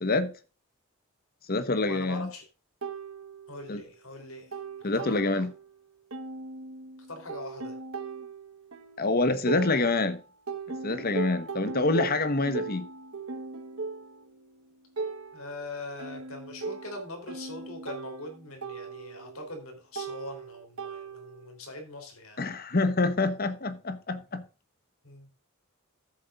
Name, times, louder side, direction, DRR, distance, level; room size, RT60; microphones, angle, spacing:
voice 1, 0.0-0.3 1.5-2.3 3.7-3.8 4.8-5.5 9.0-10.2 10.8-12.9 22.4-24.4, left 3 dB, 45° left, 1.1 m, -26 dB
voice 2, 1.8-2.4 3.5-4.5 4.8-5.5 7.1-7.8 15.3-22.4 25.0-25.3, left 2 dB, 85° left, 3.6 m, -42 dB
sound 1, 2.8-3.9 4.2-5.8 6.1-10.1 10.5-21.5, right 4 dB, 70° right, 1.2 m, -39 dB
14.0 x 8.0 x 2.5 m
head